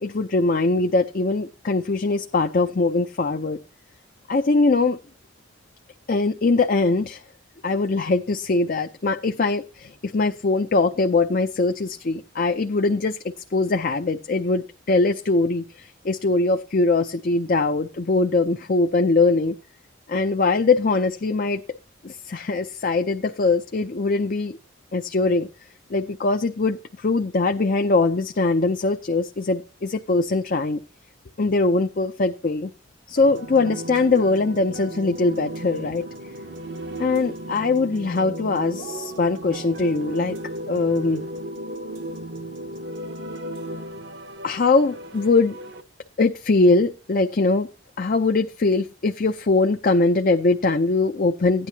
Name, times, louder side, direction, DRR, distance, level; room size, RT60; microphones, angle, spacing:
voice 1, 0.0-3.6 4.3-5.0 6.1-7.2 7.6-19.6 20.1-21.6 22.0-24.6 24.9-25.5 25.9-30.8 31.4-32.7 33.1-36.1 37.0-40.4 40.7-41.3 44.4-45.6 46.2-47.7 48.0-51.7, left 3 dB, 45° left, 6 dB, 0.5 m, -22 dB
sound 1, 33.2-45.8, right 1 dB, 60° right, 0.8 m, -35 dB
15.5 x 10.0 x 2.8 m, 0.28 s
head